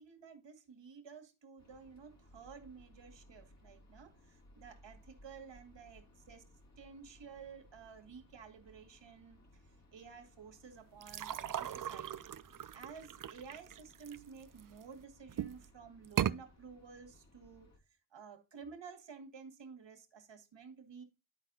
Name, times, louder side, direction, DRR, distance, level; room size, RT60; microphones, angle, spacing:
voice 1, 0.0-6.5 6.8-9.4 9.7-12.3 12.7-17.7 18.1-21.0, right 6 dB, 60° right, 1.7 m, -53 dB
sound 1, 1.6-17.8, left 1 dB, 35° left, 1.8 m, -63 dB
sound 2, 11.0-14.8 15.3-15.7 16.0-16.4, right 10 dB, 45° right, 0.5 m, -38 dB
11.0 x 4.2 x 3.9 m
cardioid pair, 75°, 49 cm